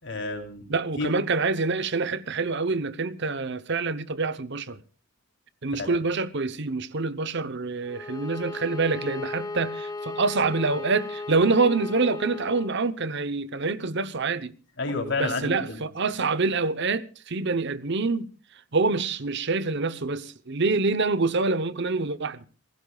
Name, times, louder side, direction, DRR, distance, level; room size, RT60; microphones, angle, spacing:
voice 1, 0.0-0.6 1.0-1.1 5.7-5.9 14.8-15.8, left 3 dB, 55° left, 3.4 m, -30 dB
voice 2, 0.7-4.8 5.6-14.5 15.2-18.3 18.7-22.4, right 3 dB, 55° right, 0.9 m, -26 dB
Bowed string instrument, 7.8-12.8, left 3 dB, 15° left, 0.9 m, -36 dB
27.5 x 16.0 x 2.4 m
head